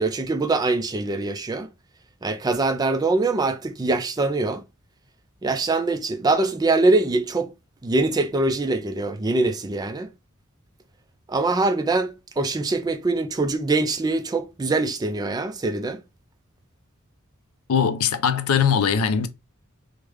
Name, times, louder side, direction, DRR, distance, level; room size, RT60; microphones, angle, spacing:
voice 1, 0.0-1.7 2.2-4.6 5.4-7.5 7.8-10.1 11.3-16.0, right 3 dB, 20° right, 0.3 m, -23 dB
voice 2, 17.7-19.3, left 7 dB, 90° left, 0.5 m, -21 dB
3.2 x 2.1 x 3.5 m
head